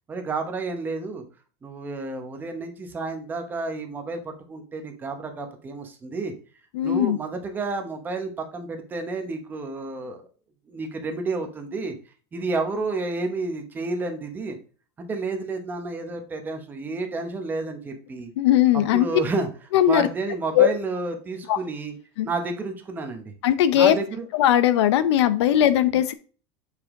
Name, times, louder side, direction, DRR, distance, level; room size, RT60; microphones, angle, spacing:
voice 1, 0.1-1.2 1.6-6.3 6.8-10.3 10.7-11.9 12.3-14.6 15.0-18.3 18.9-19.5 19.9-21.9 22.2-23.3 23.7-24.2, right 3 dB, 15° right, 5 dB, 0.9 m, -30 dB
voice 2, 6.7-7.2 18.4-19.1 19.7-20.1 20.5-20.7 21.5-21.6 22.2-22.3 23.4-24.0 24.3-26.1, left 11 dB, 85° left, 13 dB, 0.7 m, -19 dB
6.9 x 5.0 x 3.6 m, 0.38 s
supercardioid pair, 175°, 14 cm